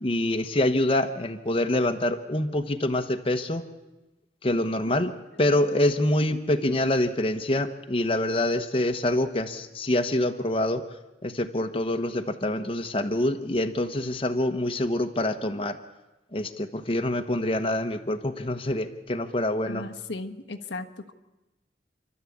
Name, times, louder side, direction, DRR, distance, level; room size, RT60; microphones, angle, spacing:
voice 1, 0.0-3.6 4.4-5.1 5.4-15.8 16.3-19.9, left 1 dB, 30° left, 6 dB, 1.1 m, -26 dB
voice 2, 6.3-6.7 19.7-21.1, left 2 dB, 80° left, 4 dB, 1.3 m, -37 dB
29.0 x 12.5 x 8.6 m, 1.1 s
head